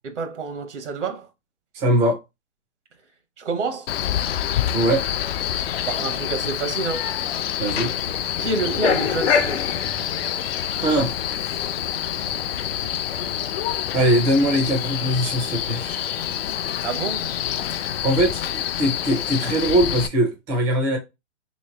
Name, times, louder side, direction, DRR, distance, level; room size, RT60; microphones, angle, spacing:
voice 1, 0.0-1.3 3.4-3.9 5.9-7.1 8.4-9.7 16.8-17.3, right 4 dB, 80° right, 1.0 m, -28 dB
voice 2, 1.7-2.2 4.7-5.0 7.6-7.9 10.8-11.1 13.9-16.2 18.0-21.0, right 1 dB, 10° right, 0.3 m, -21 dB
Male speech man speaking, 3.9-20.1, left 11 dB, 60° left, 0.4 m, -27 dB
sound 1, 4.3-18.8, left 7 dB, 75° left, 0.9 m, -32 dB
3.4 x 3.1 x 2.8 m
hypercardioid pair, 145°, 35 cm